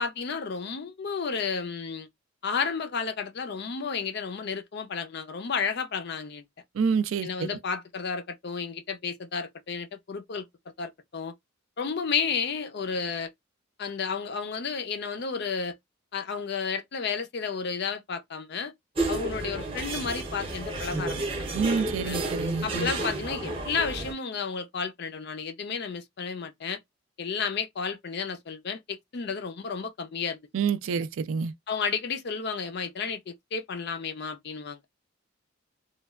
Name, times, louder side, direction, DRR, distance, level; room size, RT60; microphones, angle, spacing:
voice 1, 0.0-2.1 2.4-6.4 7.2-10.5 10.8-11.3 11.8-13.3 13.8-15.8 16.1-18.7 19.1-21.5 22.0-22.2 22.6-26.8 27.2-30.4 31.7-34.8, left 5 dB, 50° left, 0.4 m, -32 dB
voice 2, 6.8-7.6 21.5-22.9 30.5-31.5, right 5 dB, 65° right, 0.3 m, -28 dB
sound 1, 19.0-24.1, right 2 dB, 25° right, 0.7 m, -31 dB
3.0 x 2.2 x 2.3 m
head